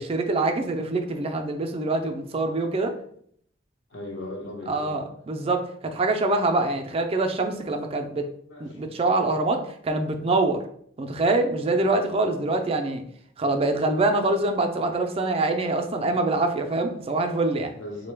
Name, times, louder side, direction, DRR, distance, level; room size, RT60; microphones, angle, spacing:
voice 1, 0.0-2.9 4.7-8.3 8.6-10.6 11.0-13.0 13.4-17.7, right 2 dB, 30° right, 5 dB, 0.4 m, -25 dB
voice 2, 3.9-5.1 8.5-8.8 17.7-18.1, left 1 dB, 75° left, 0 dB, 0.9 m, -38 dB
3.7 x 2.1 x 3.3 m, 0.65 s
head